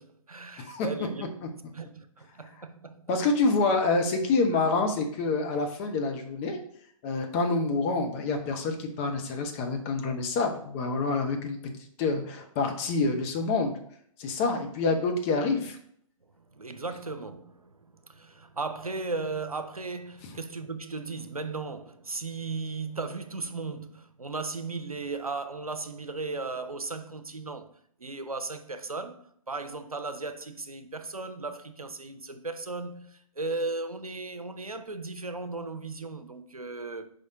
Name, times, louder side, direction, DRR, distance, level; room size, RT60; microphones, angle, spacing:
voice 1, 0.0-1.3 1.7-3.1 15.5-15.7 16.4-27.7 28.0-37.1, right 3 dB, 80° right, 0.7 m, -36 dB
voice 2, 3.1-6.6 7.0-11.6 12.0-13.7 14.2-15.7, left 3 dB, 20° left, 0.7 m, -27 dB
5.0 x 4.2 x 4.9 m
figure-of-eight pair, 125°, 18 cm